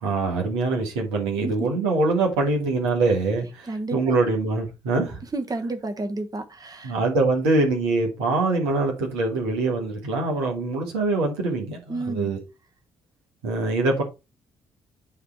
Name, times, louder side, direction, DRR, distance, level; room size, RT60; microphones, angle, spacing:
voice 1, 0.0-5.2 6.8-12.4 13.4-14.0, right 3 dB, 80° right, 1.6 m, -24 dB
voice 2, 3.6-4.1 5.3-6.9 11.9-12.3, right 2 dB, 30° right, 1.3 m, -31 dB
9.3 x 3.4 x 4.4 m
figure-of-eight pair, 40°, 13 cm